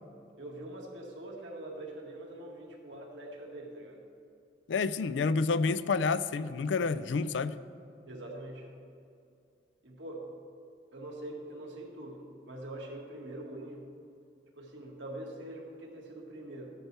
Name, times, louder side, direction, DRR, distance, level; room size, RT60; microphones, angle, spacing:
voice 1, 0.4-4.0 8.1-8.7 9.8-10.3 10.9-13.8 14.6-16.7, right 1 dB, 85° right, -1 dB, 1.9 m, -43 dB
voice 2, 4.7-7.6, left 4 dB, 80° left, 14 dB, 0.4 m, -29 dB
15.5 x 10.5 x 3.4 m, 2.5 s
head